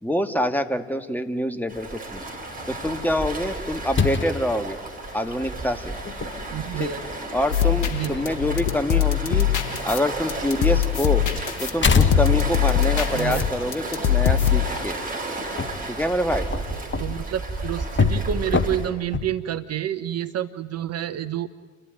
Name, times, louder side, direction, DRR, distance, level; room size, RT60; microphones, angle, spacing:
voice 1, 0.0-2.2 2.7-4.8 5.1-6.0 6.8-6.9 7.3-9.5 9.8-11.3 11.6-15.0 15.9-16.5, left 1 dB, 5° left, 7 dB, 1.8 m, -26 dB
Waves surf, 1.7-18.9, right 2 dB, 25° right, 5.5 m, -33 dB
sound 1, 2.2-19.3, left 5 dB, 35° left, 1.6 m, -29 dB
voice 2, 6.4-7.0 7.9-8.2 13.1-13.4 16.7-21.5, right 11 dB, 50° right, 13 dB, 0.8 m, -29 dB
sound 2, 7.5-14.7, left 10 dB, 70° left, 1.6 m, -23 dB
29.0 x 12.0 x 9.2 m, 1.5 s
figure-of-eight pair, 45°, 33 cm